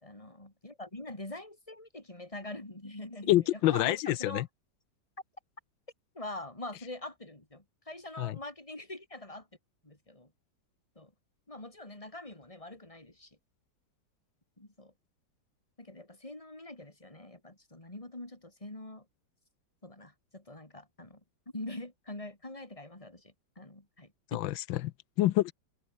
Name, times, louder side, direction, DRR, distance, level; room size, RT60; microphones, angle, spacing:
voice 1, 0.0-3.4 3.7-4.4 6.1-9.5 9.8-10.3 11.0-11.1 11.5-13.4 14.6-14.9 15.8-19.1 19.8-21.2 21.5-24.4, left 2 dB, 15° left, 3.9 m, -44 dB
voice 2, 3.3-4.5 8.2-8.4 24.3-25.5, left 15 dB, 90° left, 1.4 m, -27 dB
omnidirectional pair, 2.0 m